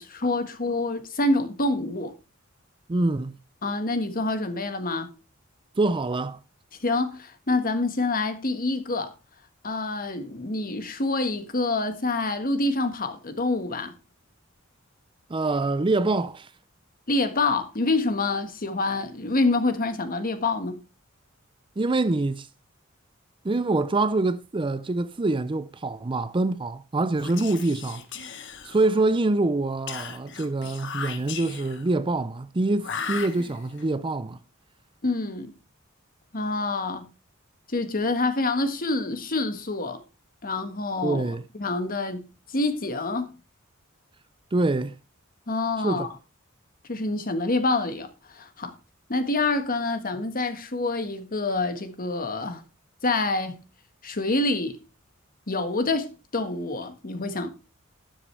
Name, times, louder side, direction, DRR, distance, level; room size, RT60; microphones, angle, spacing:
voice 1, 0.0-2.1 3.6-5.1 6.8-9.1 9.6-13.9 17.1-20.8 35.0-35.5 36.3-37.1 37.7-40.0 40.4-43.4 45.5-46.1 46.9-48.8 49.1-52.6 53.0-53.6 54.0-54.8 55.5-57.5, left 2 dB, 45° left, 1.6 m, -27 dB
voice 2, 2.9-3.4 5.8-6.4 15.3-16.5 21.8-22.5 23.4-28.3 28.6-34.4 41.0-41.4 44.5-45.0 45.8-46.1, right 2 dB, 25° right, 0.5 m, -25 dB
Whispering, 27.1-29.1 29.9-31.9 32.8-33.8, left 6 dB, 60° left, 1.3 m, -37 dB
12.0 x 10.0 x 3.3 m
head